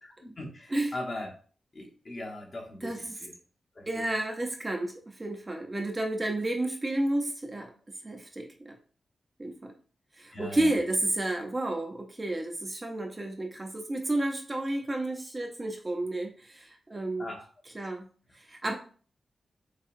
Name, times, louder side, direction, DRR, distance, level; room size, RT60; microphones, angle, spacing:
voice 1, 0.0-1.4 1.7-3.3 3.7-4.1 10.3-10.8 17.2-17.5, left 1 dB, 40° left, -1 dB, 1.2 m, -40 dB
voice 2, 2.8-3.2 3.9-7.7 8.0-8.8 9.4-9.7 10.2-17.3 17.7-18.1 18.3-18.8, right 1 dB, 25° right, 2 dB, 0.7 m, -31 dB
6.4 x 2.3 x 2.5 m, 0.40 s
wide cardioid pair, 115°, 0 cm